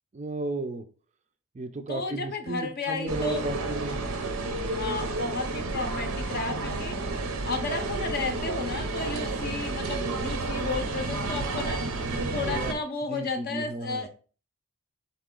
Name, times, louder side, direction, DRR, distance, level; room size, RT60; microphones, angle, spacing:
voice 1, 0.1-0.9 1.5-4.0 12.1-12.8 13.1-14.1, right 2 dB, 30° right, 8 dB, 0.4 m, -34 dB
voice 2, 1.9-3.4 4.7-7.0 7.4-11.8 12.3-14.1, left 4 dB, 45° left, 5 dB, 0.5 m, -33 dB
sound 1, 3.1-12.7, right 2 dB, 75° right, 0.6 m, -31 dB
4.1 x 2.9 x 3.7 m, 0.37 s
head